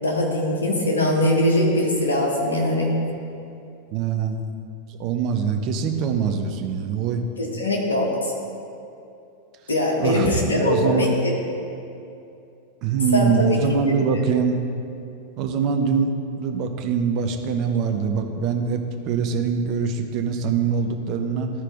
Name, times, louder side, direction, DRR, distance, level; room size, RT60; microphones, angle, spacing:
voice 1, 0.0-2.9 7.4-8.2 9.7-11.3 13.1-13.6, left 1 dB, 70° left, -2 dB, 1.6 m, -21 dB
voice 2, 3.9-4.5 5.0-7.2 10.0-11.1 12.8-14.6 15.4-21.5, right 6 dB, 40° right, 4 dB, 0.8 m, -23 dB
13.5 x 4.7 x 3.7 m, 2.7 s
figure-of-eight pair, 90°, 0 cm